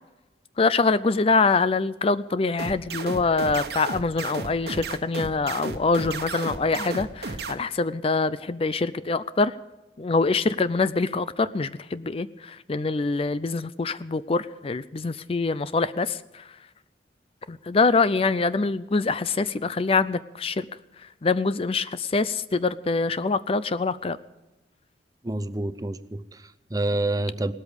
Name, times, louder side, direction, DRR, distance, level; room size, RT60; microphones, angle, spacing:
voice 1, 0.6-9.5 10.0-16.2 17.5-20.6 21.2-24.2, left 3 dB, 30° left, 15 dB, 0.4 m, -24 dB
sound 1, 2.6-7.5, right 3 dB, 60° right, 1.3 m, -33 dB
voice 2, 25.2-27.5, right 2 dB, 20° right, 13 dB, 0.6 m, -28 dB
18.5 x 13.0 x 5.2 m, 1.1 s
head